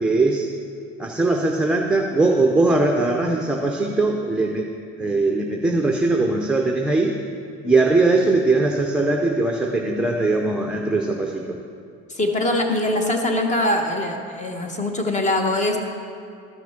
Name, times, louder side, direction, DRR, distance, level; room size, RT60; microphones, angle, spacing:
voice 1, 0.0-0.5 1.0-4.7 5.0-7.2 7.6-11.6, right 2 dB, 5° right, 0 dB, 0.6 m, -20 dB
voice 2, 12.1-15.8, left 1 dB, 20° left, 3 dB, 1.2 m, -22 dB
13.0 x 6.0 x 5.9 m, 2.5 s
cardioid pair, 120°, 32 cm